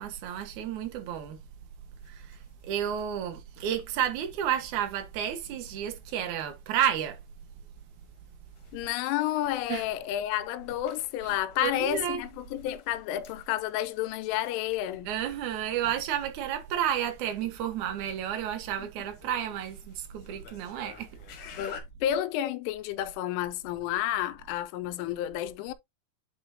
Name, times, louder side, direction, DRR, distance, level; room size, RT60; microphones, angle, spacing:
voice 1, 0.0-1.4 2.0-7.2 9.7-9.8 11.6-12.2 15.1-21.1, right 10 dB, 70° right, 1.8 m, -31 dB
sound 1, 2.0-21.8, left 7 dB, 60° left, 2.2 m, -53 dB
voice 2, 8.7-15.1 21.6-25.7, left 12 dB, 85° left, 3.2 m, -31 dB
9.5 x 4.9 x 2.7 m
omnidirectional pair, 5.6 m